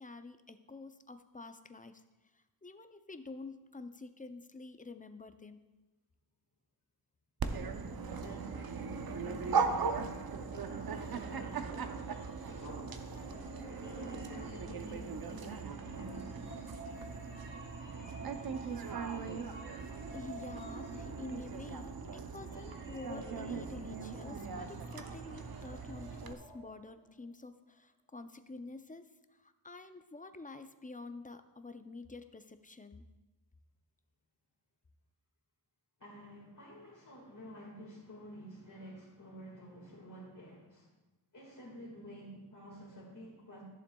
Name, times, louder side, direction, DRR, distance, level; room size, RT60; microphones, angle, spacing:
voice 1, 0.0-2.0 2.3-5.6 20.1-33.1, left 3 dB, 20° left, 9 dB, 0.4 m, -48 dB
Dog, 7.4-26.3, right 5 dB, 55° right, 0.7 m, -39 dB
voice 2, 8.1-10.2 10.5-16.4 36.0-40.9 41.3-43.6, equal, 45° left, -5 dB, 1.9 m, -50 dB
sound 1, 10.4-27.1, right 1 dB, 25° right, 2.4 m, -53 dB
14.0 x 7.2 x 2.3 m, 1.1 s
wide cardioid pair, 80°, 45 cm